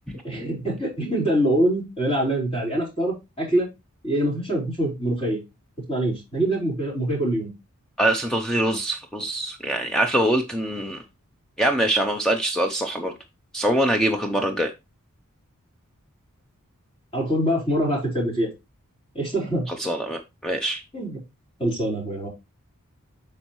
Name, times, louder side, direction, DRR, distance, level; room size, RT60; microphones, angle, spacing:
voice 1, 0.2-3.7 4.0-5.4 5.9-7.5 17.1-18.5 19.1-19.7 20.9-21.2 21.6-22.3, right 1 dB, 25° left, 4.5 m, -24 dB
voice 2, 8.0-11.0 11.6-13.1 13.5-14.7 19.7-20.8, right 1 dB, 5° left, 0.6 m, -23 dB
8.5 x 5.4 x 3.0 m
head